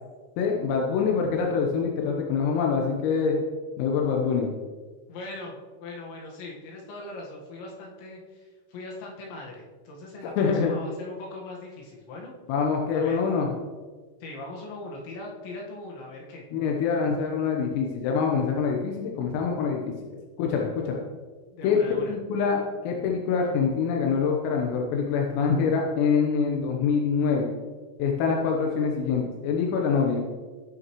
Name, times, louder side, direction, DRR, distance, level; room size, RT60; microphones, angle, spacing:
voice 1, 0.4-3.4 3.8-4.5 10.4-10.7 12.5-13.5 16.5-20.0 20.4-21.0 21.6-27.5 28.0-30.2, left 5 dB, 90° left, 0 dB, 3.7 m, -25 dB
voice 2, 5.1-12.3 12.9-13.2 14.2-16.5 21.5-22.2, left 2 dB, 70° left, -2 dB, 3.6 m, -40 dB
19.5 x 6.7 x 3.1 m, 1.4 s
omnidirectional pair, 5.9 m